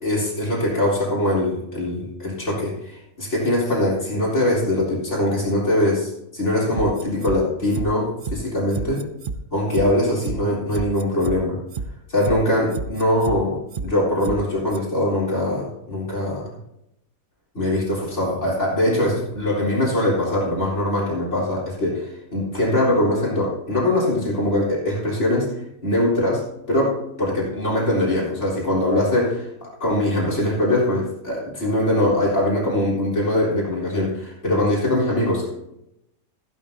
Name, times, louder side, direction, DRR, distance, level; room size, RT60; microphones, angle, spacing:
voice 1, 0.0-9.1 9.5-11.6 12.1-16.5 17.5-29.2 29.8-35.5, left 1 dB, 55° left, -4 dB, 4.2 m, -22 dB
sound 1, 6.8-7.4 7.7-7.9 8.2-8.4 8.7-9.4 9.7-9.9 10.2-10.4 10.7-11.4 11.7-11.9 12.2-12.4 12.7-13.4 13.7-13.9 14.2-14.4 14.7-14.8, right 6 dB, 50° right, 0.7 m, -30 dB
15.0 x 12.0 x 2.8 m, 0.82 s
omnidirectional pair, 1.5 m